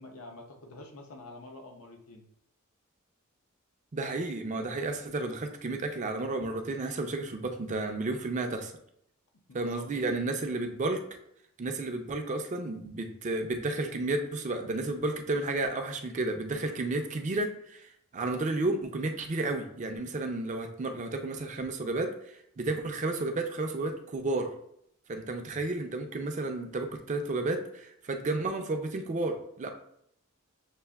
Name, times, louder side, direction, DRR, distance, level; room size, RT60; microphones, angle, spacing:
voice 1, 0.0-2.3 9.5-10.2, left 2 dB, 90° left, 2 dB, 0.7 m, -47 dB
voice 2, 3.9-8.7 9.5-11.1 11.6-24.5 25.1-29.7, right 2 dB, 35° right, 5 dB, 0.4 m, -32 dB
6.6 x 2.5 x 2.3 m, 0.73 s
head